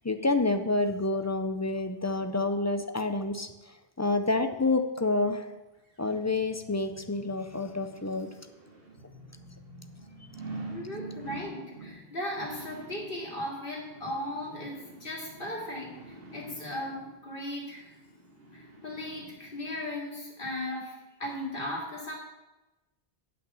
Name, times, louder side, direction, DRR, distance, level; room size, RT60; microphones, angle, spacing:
voice 1, 0.0-3.5 4.0-5.5 6.0-8.3, left 2 dB, 25° left, 8 dB, 0.3 m, -28 dB
sound 1, 5.9-19.8 20.2-20.3, right 2 dB, 65° right, 2.1 m, -47 dB
voice 2, 10.7-17.9 18.5-20.9 21.2-22.1, left 1 dB, 60° left, -3 dB, 2.6 m, -37 dB
8.4 x 6.0 x 7.0 m, 1.1 s
omnidirectional pair, 1.0 m